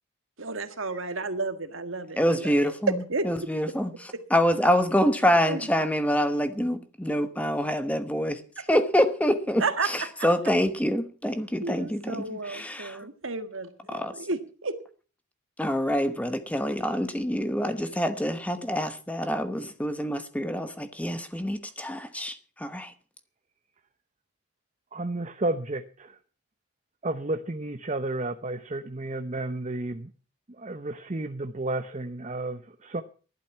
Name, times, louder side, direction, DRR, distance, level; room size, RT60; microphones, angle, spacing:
voice 1, 0.4-2.7 3.1-3.2 5.5-5.6 9.6-9.9 11.6-14.8, right 3 dB, 65° right, 1.7 m, -32 dB
voice 2, 2.2-13.1 13.9-14.3 15.6-22.9, equal, 5° left, 1.0 m, -26 dB
voice 3, 24.9-26.2 27.0-30.1 30.6-33.0, right 2 dB, 30° right, 0.7 m, -32 dB
15.0 x 12.0 x 5.7 m
head